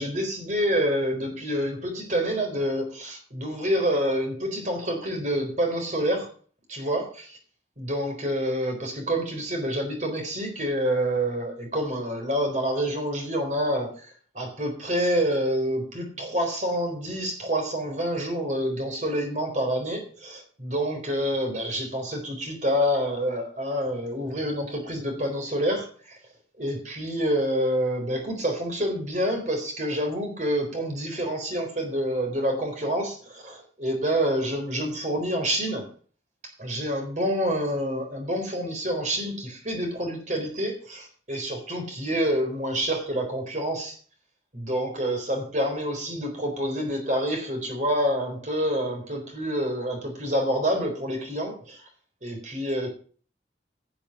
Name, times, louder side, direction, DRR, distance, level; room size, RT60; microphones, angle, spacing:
voice 1, 0.0-6.3 6.7-7.4 7.8-13.9 14.3-26.2 26.6-35.9 36.6-44.0 44.5-51.9 52.2-52.9, equal, 40° right, 3 dB, 4.1 m, -27 dB
11.5 x 7.0 x 7.6 m, 0.43 s
head